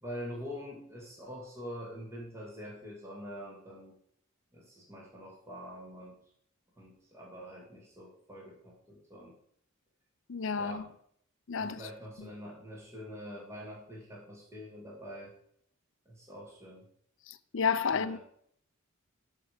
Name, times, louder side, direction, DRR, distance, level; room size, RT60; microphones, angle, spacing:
voice 1, 0.0-3.9 4.5-6.2 6.8-9.4 10.6-10.9 11.6-15.3 16.1-16.9 17.9-18.2, equal, 15° right, 2.5 m, -45 dB
voice 2, 10.3-10.8 11.5-11.8 17.3-18.2, left 6 dB, 65° left, 0.6 m, -31 dB
13.0 x 5.5 x 5.1 m
head